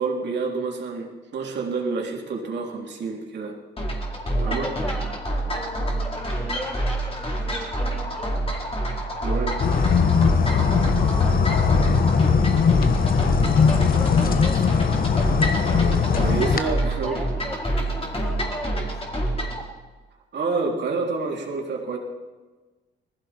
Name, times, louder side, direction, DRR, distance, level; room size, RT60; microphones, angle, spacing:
voice 1, 0.0-3.5 4.4-4.7 9.1-9.6 16.2-17.2 20.3-22.0, right 4 dB, 60° right, 0 dB, 3.6 m, -28 dB
sound 1, 3.8-19.6, right 1 dB, 30° left, 4.4 m, -27 dB
voice 2, 4.3-8.4 10.9-11.4 13.3-14.7 16.4-16.8 17.0-18.8, equal, ahead, 0 dB, 4.8 m, -37 dB
sound 2, 9.6-16.6, left 6 dB, 45° left, 1.2 m, -20 dB
20.0 x 15.5 x 4.5 m, 1.2 s
cardioid pair, 90°, 20 cm